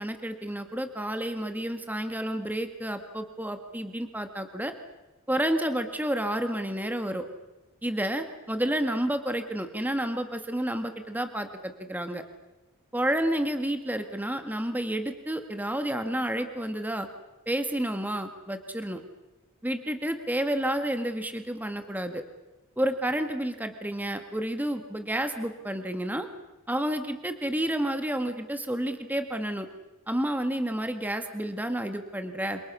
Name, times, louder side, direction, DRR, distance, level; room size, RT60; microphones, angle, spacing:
voice 1, 0.0-4.7 5.3-7.2 7.8-12.2 12.9-17.1 17.5-19.0 19.6-22.2 22.8-26.3 26.7-29.7 30.1-32.6, right 1 dB, 10° right, 7 dB, 1.8 m, -30 dB
28.0 x 27.0 x 6.3 m, 1.0 s
head